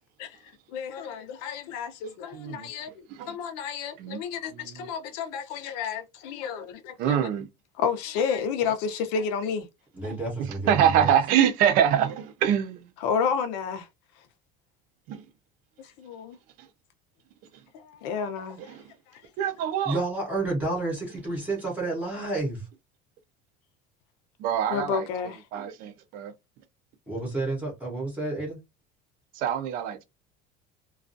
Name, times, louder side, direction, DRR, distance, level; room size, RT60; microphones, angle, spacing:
voice 1, 0.7-7.2 7.8-9.7 13.0-13.9 15.8-16.4 17.7-18.6 24.7-25.4, left 6 dB, 80° left, 0.6 m, -31 dB
voice 2, 2.3-2.7 3.1-3.4 4.0-4.2 4.5-4.9 7.0-7.5 10.0-10.2 10.6-12.9 15.1-15.2 18.7-18.8 19.4-20.0 24.4-25.1 25.5-26.3 29.3-30.0, right 9 dB, 45° right, 0.4 m, -25 dB
voice 3, 10.0-11.1 19.8-22.7 27.1-28.6, right 2 dB, 5° right, 0.8 m, -30 dB
2.4 x 2.3 x 2.5 m
cardioid pair, 175°, 21 cm